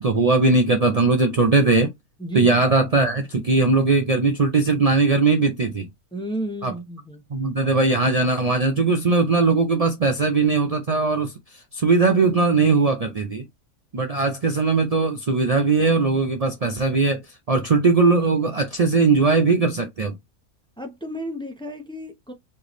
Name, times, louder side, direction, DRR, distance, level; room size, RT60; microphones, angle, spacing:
voice 1, 0.0-1.9 2.3-5.9 6.6-6.7 7.3-11.3 11.7-13.5 13.9-17.2 17.5-20.1, right 3 dB, 75° right, 0.3 m, -19 dB
voice 2, 2.2-2.7 6.1-7.2 20.8-22.3, equal, 5° left, 0.5 m, -32 dB
4.5 x 3.3 x 3.0 m
omnidirectional pair, 1.6 m